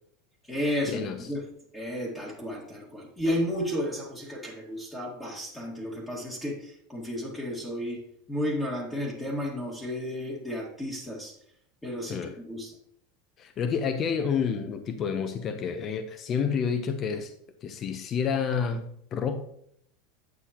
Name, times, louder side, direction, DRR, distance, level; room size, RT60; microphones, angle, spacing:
voice 1, 0.4-1.5 1.7-11.4 11.8-12.7, equal, 10° left, -4 dB, 2.0 m, -33 dB
voice 2, 13.4-17.3 17.6-19.4, left 6 dB, 35° left, 8 dB, 0.8 m, -29 dB
9.6 x 8.3 x 3.0 m, 0.70 s
supercardioid pair, 125°, 0 cm